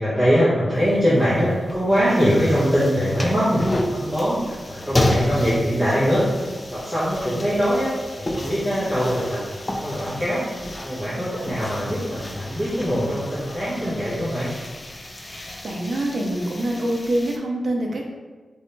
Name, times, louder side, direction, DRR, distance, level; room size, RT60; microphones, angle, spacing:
voice 1, 0.0-6.2 6.7-7.9 8.2-10.4 10.8-14.5, equal, 10° right, -12 dB, 1.1 m, -22 dB
sound 1, 0.7-17.4, left 1 dB, 20° left, 0.4 m, -31 dB
voice 2, 15.2-18.0, right 1 dB, 50° right, 0 dB, 0.7 m, -25 dB
3.5 x 3.2 x 4.2 m, 1.3 s
wide cardioid pair, 145°, 0 cm